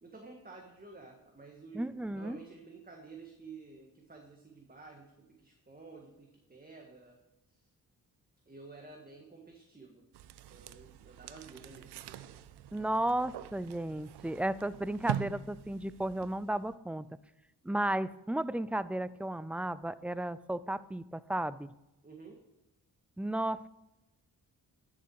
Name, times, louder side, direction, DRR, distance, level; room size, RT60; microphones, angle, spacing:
voice 1, 0.0-7.2 7.5-7.7 8.5-10.1 10.5-12.4 22.0-22.4, right 4 dB, 20° right, 1 dB, 1.7 m, -52 dB
voice 2, 1.7-2.4 12.7-17.1 17.6-21.7 23.2-23.7, right 1 dB, 5° right, 16 dB, 0.4 m, -34 dB
sound 1, 10.1-16.7, right 11 dB, 90° right, 0.6 m, -43 dB
11.0 x 7.1 x 4.7 m, 0.94 s
cardioid pair, 65°, 39 cm